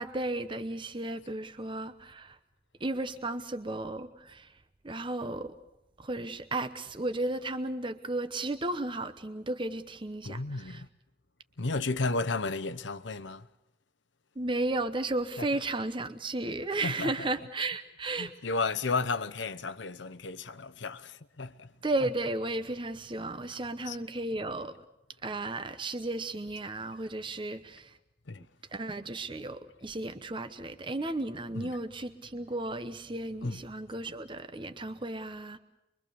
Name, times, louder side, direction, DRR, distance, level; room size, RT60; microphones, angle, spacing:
voice 1, 0.0-2.4 2.8-4.5 4.8-5.5 6.0-10.8 14.4-18.3 21.8-24.9 25.2-28.0 28.7-35.6, right 2 dB, 25° right, 0.9 m, -34 dB
voice 2, 10.2-10.9 11.6-13.5 15.4-15.5 16.8-17.3 18.2-21.7 23.9-24.0 28.3-28.4 31.5-31.8 33.4-33.6, left 3 dB, 85° left, 0.9 m, -33 dB
25.5 x 23.0 x 6.9 m
head